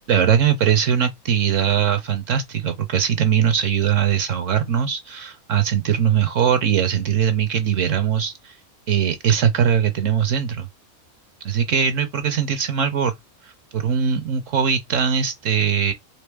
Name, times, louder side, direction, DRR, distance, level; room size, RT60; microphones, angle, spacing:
voice 1, 0.1-8.5 8.9-10.7 11.4-13.1 13.4-15.9, right 8 dB, 65° right, 1.0 m, -21 dB
4.2 x 3.4 x 3.4 m
omnidirectional pair, 1.5 m